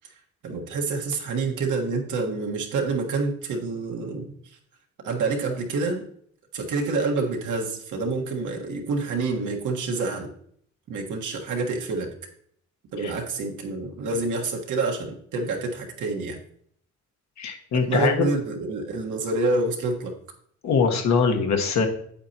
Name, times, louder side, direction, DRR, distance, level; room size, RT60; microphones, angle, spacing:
voice 1, 0.4-4.6 5.0-6.0 6.5-10.3 10.9-12.1 12.9-16.4 17.7-20.1, right 3 dB, 80° right, 1 dB, 1.5 m, -27 dB
voice 2, 17.4-18.3 20.6-21.9, left 5 dB, 65° left, 3 dB, 1.3 m, -22 dB
8.5 x 7.9 x 2.9 m, 0.65 s
cardioid pair, 90°, 30 cm